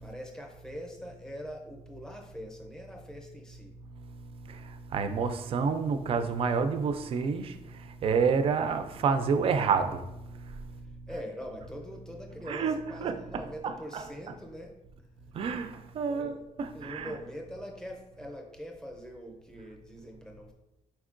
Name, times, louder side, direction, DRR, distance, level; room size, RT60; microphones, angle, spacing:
voice 1, 0.0-3.7 10.8-14.7 16.1-16.4 16.7-20.5, equal, 5° left, 0.6 m, -43 dB
voice 2, 4.5-10.0 10.3-10.6 12.5-12.8 13.0-14.0 15.3-16.3 16.6-17.1, right 5 dB, 45° right, 0.3 m, -29 dB
4.4 x 4.3 x 2.5 m
cardioid pair, 160°, 13 cm